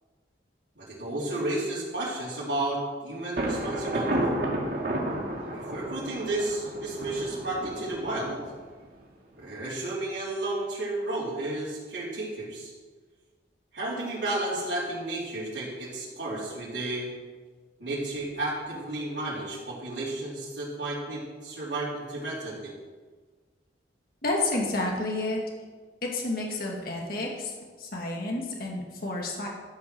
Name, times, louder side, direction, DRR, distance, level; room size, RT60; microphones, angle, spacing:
voice 1, 0.8-4.1 5.5-8.4 9.4-12.7 13.7-17.1 17.8-22.7, right 2 dB, 80° right, -9 dB, 3.8 m, -32 dB
Thunder, 3.4-9.0, right 1 dB, 55° right, 2.2 m, -31 dB
voice 2, 24.2-25.4 26.0-29.5, left 2 dB, 55° left, -1 dB, 2.1 m, -30 dB
13.5 x 7.4 x 6.2 m, 1.4 s
head